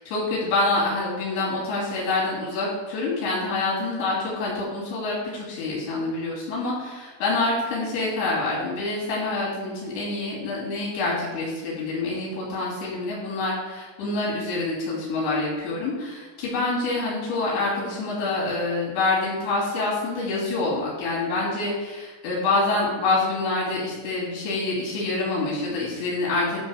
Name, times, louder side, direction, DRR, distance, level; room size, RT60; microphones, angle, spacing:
voice 1, 0.0-26.6, left 2 dB, 85° left, -6 dB, 5.0 m, -26 dB
10.5 x 3.5 x 6.4 m, 1.3 s
omnidirectional pair, 5.0 m